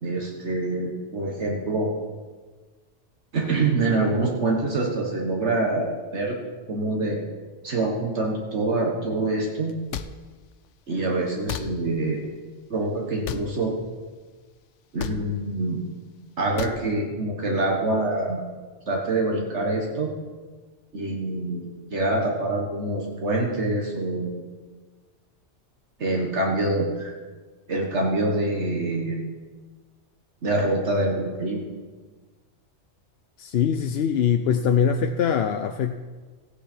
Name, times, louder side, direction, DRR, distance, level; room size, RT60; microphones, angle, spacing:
voice 1, 0.0-1.9 3.3-6.4 6.7-7.2 7.6-9.7 10.9-12.3 12.7-13.7 14.9-15.8 16.4-18.4 18.9-20.1 20.9-24.3 26.0-27.1 27.7-29.2 30.4-31.6, right 2 dB, 70° right, 0 dB, 1.7 m, -25 dB
sound 1, 9.9-10.1 11.5-11.7 13.2-13.5 15.0-15.2 16.6-16.8, left 10 dB, 85° left, 0.9 m, -31 dB
voice 2, 33.4-35.9, left 7 dB, 65° left, 7 dB, 0.8 m, -22 dB
15.0 x 10.0 x 4.4 m, 1.4 s
omnidirectional pair, 1.2 m